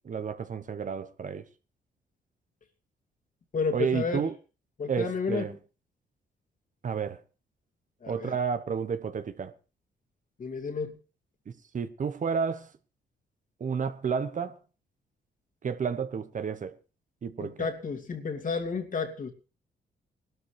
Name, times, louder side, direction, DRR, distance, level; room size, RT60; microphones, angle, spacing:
voice 1, 0.0-1.4 3.7-4.3 4.9-5.5 6.8-7.2 8.1-9.5 11.7-12.7 13.6-14.6 15.6-16.7 17.2-17.6, right 6 dB, 45° right, 1.1 m, -31 dB
voice 2, 3.5-4.2 4.8-5.5 8.0-8.3 10.4-11.0 17.4-19.3, left 5 dB, 50° left, 2.5 m, -31 dB
20.0 x 12.5 x 3.4 m
cardioid pair, 80°, 18 cm